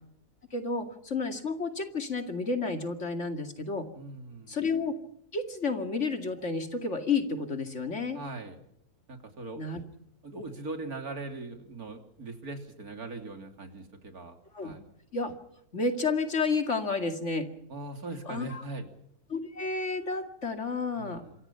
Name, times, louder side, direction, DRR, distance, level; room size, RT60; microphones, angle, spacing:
voice 1, 0.5-3.9 4.5-4.9 5.3-8.2 9.6-9.8 14.5-14.7 15.1-15.3 15.7-17.5 18.3-18.6 19.3-21.2, left 4 dB, 50° left, 6 dB, 2.6 m, -31 dB
voice 2, 4.0-4.6 8.1-8.6 9.1-9.9 10.2-14.4 14.6-14.8 17.7-18.9 20.9-21.4, right 2 dB, 65° right, 5 dB, 3.6 m, -40 dB
27.5 x 23.5 x 5.7 m, 0.74 s
omnidirectional pair, 1.7 m